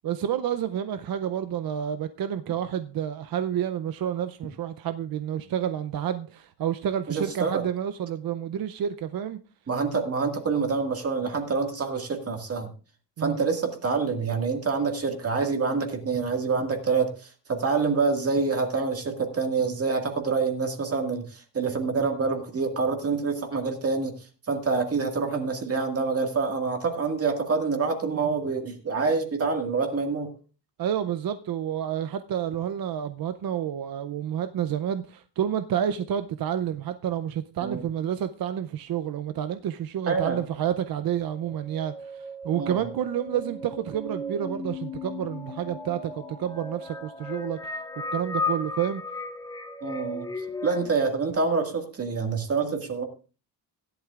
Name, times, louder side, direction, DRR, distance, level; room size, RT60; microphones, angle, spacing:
voice 1, 0.0-9.4 13.2-13.4 30.8-49.0, right 9 dB, 55° right, 0.6 m, -29 dB
voice 2, 7.1-7.6 9.7-12.7 13.2-24.1 24.5-30.3 37.6-37.8 40.1-40.4 42.6-42.8 49.8-50.3 50.6-53.0, right 4 dB, 35° right, 1.9 m, -26 dB
sound 1, 41.3-50.9, left 2 dB, 10° left, 0.6 m, -35 dB
16.5 x 11.5 x 2.4 m
wide cardioid pair, 155°, 43 cm